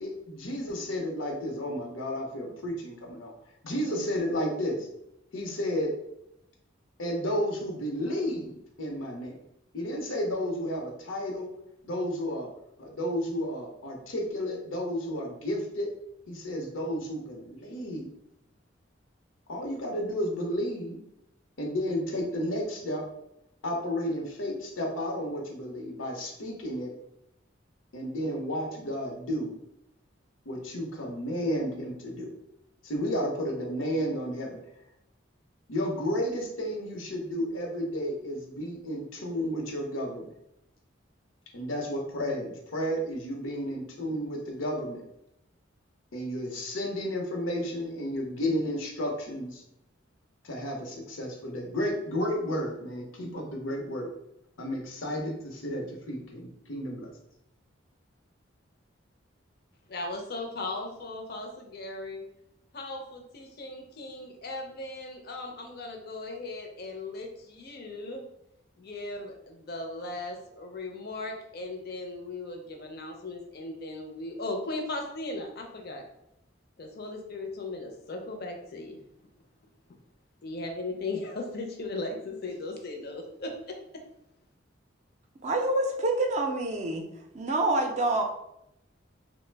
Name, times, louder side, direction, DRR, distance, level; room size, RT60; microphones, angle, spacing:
voice 1, 0.0-3.3 3.6-4.9 5.3-5.9 7.0-9.4 9.7-11.5 11.8-12.5 12.8-15.9 16.3-18.1 19.5-21.0 21.6-23.0 23.6-26.9 27.9-29.6 30.5-32.3 32.8-34.6 35.7-40.3 41.5-45.0 46.1-49.6 50.4-54.1 54.6-57.1, equal, 85° left, 1 dB, 0.7 m, -32 dB
voice 2, 59.9-62.2 62.7-68.3 68.8-76.0 76.8-79.0 80.4-84.0, left 2 dB, 50° left, 3 dB, 0.5 m, -37 dB
voice 3, 85.4-87.0 87.3-88.2, right 2 dB, 35° right, 3 dB, 0.4 m, -26 dB
3.1 x 2.0 x 3.3 m, 0.82 s
head